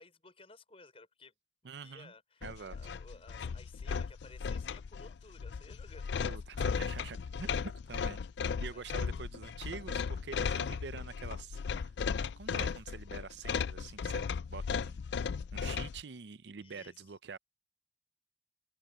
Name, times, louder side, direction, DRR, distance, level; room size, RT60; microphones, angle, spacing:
voice 1, 0.0-1.3 1.6-6.3 8.7-9.2 16.6-17.0, left 3 dB, 35° left, 5.8 m, -56 dB
voice 2, 1.6-2.1 2.4-2.8 6.3-8.2 8.6-14.2 14.5-15.0 15.5-17.4, right 5 dB, 75° right, 0.6 m, -46 dB
sound 1, 2.4-16.0, left 6 dB, 75° left, 0.4 m, -36 dB
open air
head